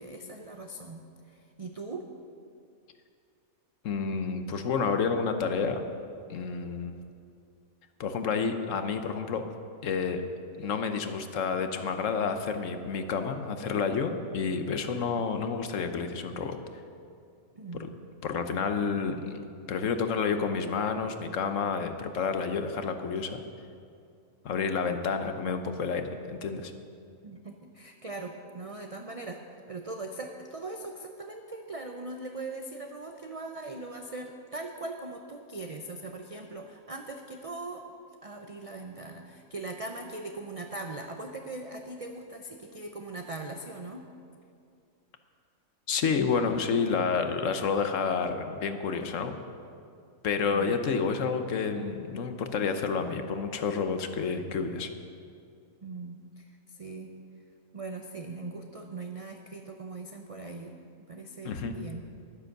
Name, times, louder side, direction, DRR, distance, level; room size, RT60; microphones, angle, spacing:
voice 1, 0.0-2.1 17.6-17.9 27.2-29.4 29.7-38.0 38.2-44.0 50.5-50.8 55.8-57.2 57.7-60.8 61.1-62.0, right 2 dB, 40° right, 3 dB, 0.5 m, -40 dB
voice 2, 3.8-5.8 6.3-6.9 8.0-9.4 9.8-10.2 10.6-16.6 17.8-17.9 18.2-23.4 24.4-26.7 45.9-49.4 50.2-54.9 61.4-61.7, left 5 dB, 65° left, 7 dB, 1.2 m, -29 dB
12.0 x 9.9 x 6.6 m, 2.4 s
omnidirectional pair, 1.4 m